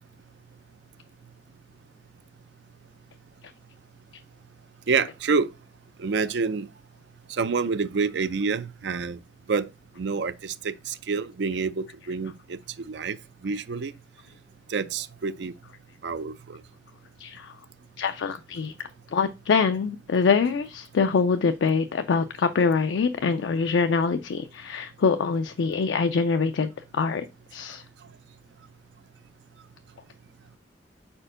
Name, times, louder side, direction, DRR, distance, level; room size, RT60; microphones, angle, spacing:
voice 1, 4.9-5.5 6.0-6.7 7.3-9.2 9.5-9.7 10.0-12.6 12.9-13.2 13.4-13.9 14.7-15.5 16.0-16.6, right 5 dB, 70° right, 0.5 m, -27 dB
voice 2, 17.2-17.5 18.0-18.7 19.1-27.3 27.5-27.8, left 5 dB, 85° left, 0.4 m, -24 dB
4.4 x 4.4 x 4.9 m
head